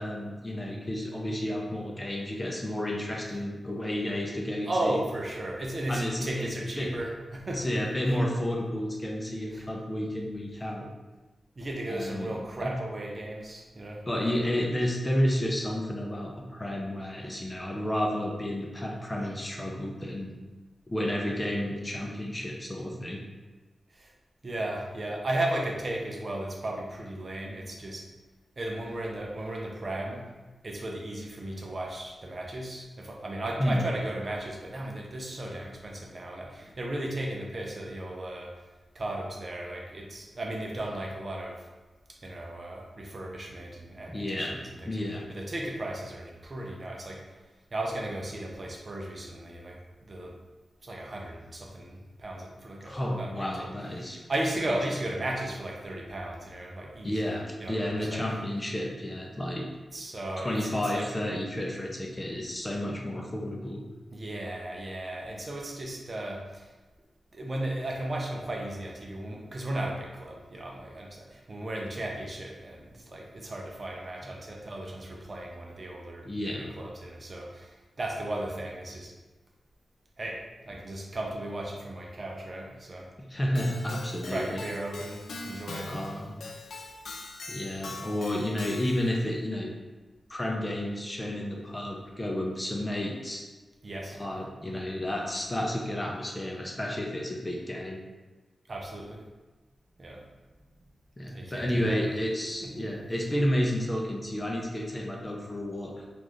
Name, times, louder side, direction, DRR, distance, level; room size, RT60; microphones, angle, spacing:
voice 1, 0.0-5.0 5.9-6.9 7.5-10.9 11.9-12.3 12.6-12.7 14.1-20.3 20.9-23.2 33.6-33.9 44.1-45.2 52.8-54.2 57.0-59.7 60.4-63.8 76.2-76.7 83.2-84.6 85.9-86.4 87.5-89.7 90.3-93.4 94.1-98.0 101.2-106.1, left 1 dB, 20° left, -1 dB, 0.6 m, -31 dB
voice 2, 4.7-7.7 9.5-9.6 11.6-14.4 23.9-24.1 24.4-28.1 28.6-30.3 30.6-38.6 38.9-41.7 42.2-44.9 45.3-47.3 47.7-50.4 50.8-53.5 54.0-57.3 57.6-58.2 59.9-61.1 64.1-66.7 67.3-79.1 80.2-83.1 84.2-86.2 93.8-94.2 98.7-99.2 100.0-100.2 101.3-102.1 102.6-102.9, right 1 dB, 40° right, -1 dB, 0.6 m, -35 dB
Keyboard (musical), 83.6-89.2, left 2 dB, 85° left, 0.4 m, -42 dB
3.9 x 2.5 x 3.1 m, 1.2 s
wide cardioid pair, 95°, 0 cm